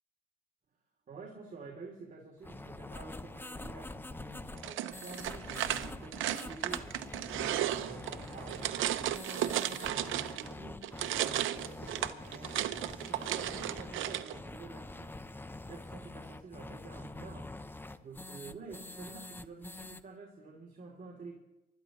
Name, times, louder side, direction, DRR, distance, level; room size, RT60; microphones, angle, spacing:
voice 1, 1.1-7.5 7.8-8.9 9.3-15.2 15.7-17.7 18.0-21.4, right 4 dB, 40° right, -2 dB, 3.1 m, -49 dB
sound 1, 2.4-20.0, left 2 dB, 10° left, 0.7 m, -45 dB
sound 2, 4.6-10.5 10.8-14.3, right 12 dB, 80° right, 0.7 m, -34 dB
24.5 x 13.0 x 3.1 m, 0.92 s
cardioid pair, 90°, 20 cm